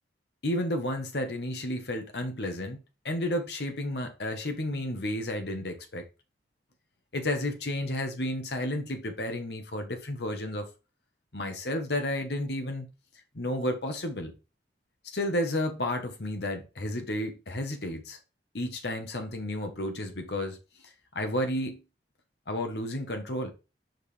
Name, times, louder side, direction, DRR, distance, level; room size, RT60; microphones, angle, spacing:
voice 1, 0.4-2.8 3.0-6.0 7.1-10.7 11.3-12.9 13.3-14.3 15.1-18.2 18.5-20.6 21.1-21.8 22.5-23.5, left 1 dB, 65° left, 1.3 m, -32 dB
6.4 x 5.3 x 3.3 m
head